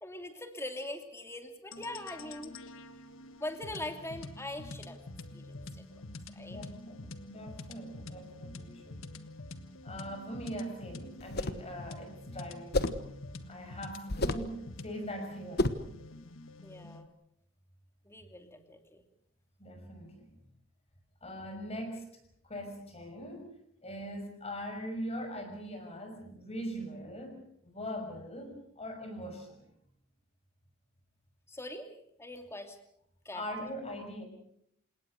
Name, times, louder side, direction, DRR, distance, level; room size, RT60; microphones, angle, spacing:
voice 1, 0.0-2.5 3.4-5.0 5.3-5.9 6.3-6.6 16.6-17.1 18.0-19.0 31.5-32.8 33.2-33.4, left 1 dB, 15° left, 6 dB, 2.7 m, -42 dB
sound 1, 1.7-17.1, left 2 dB, 70° left, 1.5 m, -47 dB
voice 2, 6.5-9.1 9.8-12.8 13.5-15.7 19.6-20.3 21.2-22.0 22.4-23.5 23.8-29.6 33.3-34.2, equal, 30° left, 5 dB, 5.9 m, -41 dB
sound 2, 11.2-11.7 12.7-13.1 14.1-14.5 15.6-15.9, left 2 dB, 50° left, 1.3 m, -30 dB
28.0 x 18.5 x 6.5 m, 0.72 s
head